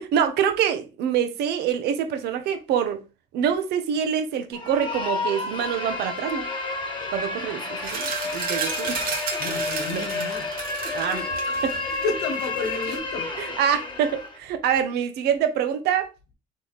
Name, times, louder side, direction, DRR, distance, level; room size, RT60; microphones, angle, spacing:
voice 1, 0.0-3.0 3.3-6.5 7.1-9.0 9.9-10.0 10.9-11.3 11.6-12.0 13.4-16.1, right 8 dB, 75° right, 0.8 m, -25 dB
sound 1, 4.5-14.4, left 3 dB, 30° left, 1.4 m, -30 dB
sound 2, 7.8-13.0, right 6 dB, 60° right, 1.1 m, -33 dB
voice 2, 9.4-10.5 11.5-11.8 12.0-13.3, left 3 dB, 85° left, 1.1 m, -31 dB
3.7 x 3.2 x 3.9 m
cardioid pair, 110°, 17 cm